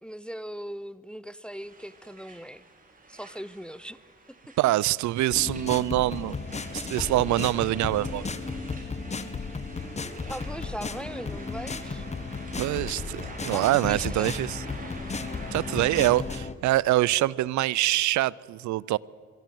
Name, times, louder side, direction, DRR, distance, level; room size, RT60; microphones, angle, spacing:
voice 1, 0.0-2.6 3.1-4.0 4.3-4.5 10.3-12.1 13.5-14.3, equal, 5° left, 0.4 m, -39 dB
sound 1, 1.5-16.2, right 2 dB, 30° right, 4.2 m, -44 dB
voice 2, 4.6-6.4 6.7-8.3 12.6-14.6 15.5-19.0, right 16 dB, 75° right, 0.5 m, -25 dB
sound 2, 5.3-16.5, left 4 dB, 25° left, 1.0 m, -35 dB
23.0 x 13.0 x 9.1 m
cardioid pair, 105°, 29 cm